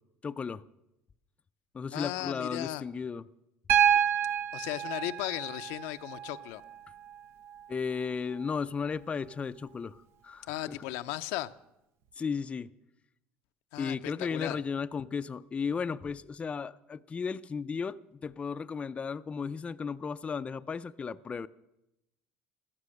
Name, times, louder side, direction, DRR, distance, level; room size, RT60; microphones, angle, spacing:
voice 1, 0.2-0.6 1.7-3.3 7.7-10.8 12.2-12.7 13.8-21.5, left 5 dB, 25° left, 0.5 m, -35 dB
voice 2, 1.9-2.8 4.5-6.6 10.5-11.5 13.7-14.6, left 16 dB, 85° left, 0.6 m, -36 dB
Piano, 3.7-7.7 9.3-9.4, right 9 dB, 65° right, 0.7 m, -29 dB
14.5 x 14.0 x 6.5 m
supercardioid pair, 105°, 5 cm